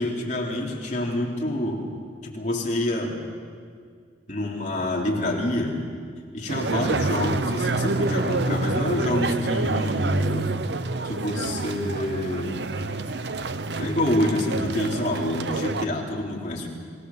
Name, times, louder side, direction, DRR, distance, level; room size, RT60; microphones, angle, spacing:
voice 1, 0.0-1.9 2.2-3.2 4.3-5.8 6.3-10.5 11.0-12.6 13.8-16.7, left 1 dB, 40° left, -2 dB, 3.5 m, -27 dB
sound 1, 6.5-15.9, right 2 dB, 65° right, 0.8 m, -27 dB
sound 2, 8.2-10.9, left 1 dB, 70° left, 2.3 m, -46 dB
25.5 x 18.5 x 7.3 m, 2.1 s
head